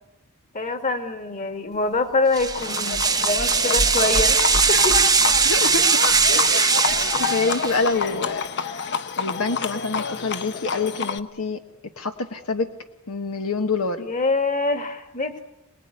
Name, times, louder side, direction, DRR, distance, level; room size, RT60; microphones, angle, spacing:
voice 1, 0.5-4.4 4.7-5.0 6.3-6.8 14.0-15.4, left 3 dB, 35° left, 7 dB, 2.2 m, -25 dB
sound 1, 2.3-7.9, right 5 dB, 15° right, 1.0 m, -20 dB
Livestock farm animals working animals, 2.6-11.2, left 6 dB, 50° left, 1.0 m, -28 dB
voice 2, 5.4-6.0 6.3-6.7 7.1-8.9 9.2-11.6 12.0-12.7 13.1-14.1, left 4 dB, 70° left, 6 dB, 1.3 m, -26 dB
26.5 x 19.5 x 9.7 m, 0.93 s
head